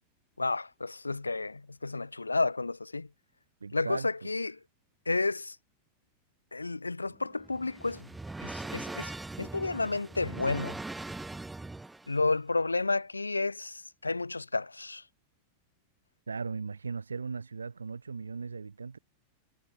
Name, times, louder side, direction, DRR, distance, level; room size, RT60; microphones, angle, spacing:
voice 1, 0.4-3.1 3.7-4.6 5.1-5.6 6.5-8.1 8.4-9.1 9.4-10.8 12.1-15.0, left 3 dB, 80° left, 0.6 m, -31 dB
voice 2, 3.6-4.3 16.3-19.0, right 5 dB, 75° right, 0.8 m, -38 dB
sound 1, 7.1-12.2, right 2 dB, 10° right, 1.1 m, -41 dB
figure-of-eight pair, 90°, 0 cm